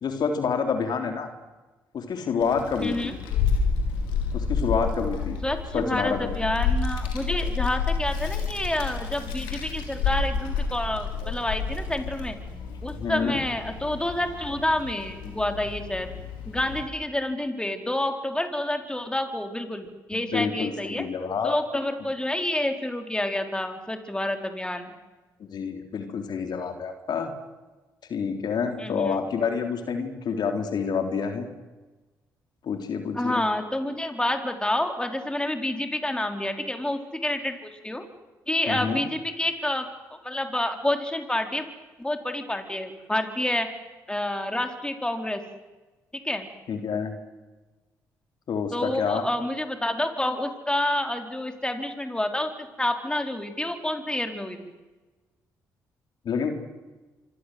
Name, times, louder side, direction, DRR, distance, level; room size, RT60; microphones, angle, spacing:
voice 1, 0.0-1.3 1.9-3.1 4.3-5.4 5.7-6.3 13.0-13.4 20.1-21.5 25.4-27.3 28.1-31.5 32.6-33.4 38.7-39.0 46.7-47.1 48.5-49.3 56.3-56.5, left 6 dB, 60° left, 6 dB, 3.7 m, -28 dB
Child speech kid speaking, 2.4-16.8, left 5 dB, 80° left, 5.2 m, -30 dB
voice 2, 2.8-3.1 5.4-12.4 12.8-16.1 16.5-21.1 21.4-24.9 28.8-29.2 33.1-38.0 38.5-39.9 40.2-41.6 42.0-43.7 44.1-45.4 46.1-46.5 48.7-54.6, left 1 dB, 10° left, 6 dB, 4.5 m, -28 dB
26.0 x 25.0 x 8.0 m, 1.2 s
hypercardioid pair, 50°, 8 cm